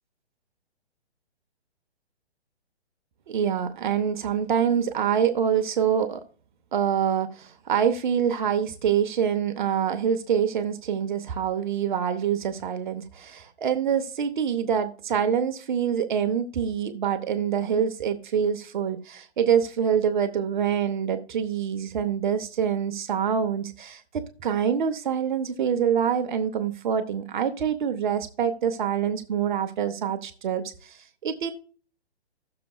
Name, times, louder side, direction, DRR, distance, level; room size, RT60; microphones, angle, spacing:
voice 1, 3.3-6.2 6.7-31.5, right 8 dB, 45° right, 0.9 m, -25 dB
16.5 x 6.8 x 2.3 m
hypercardioid pair, 145°, 33 cm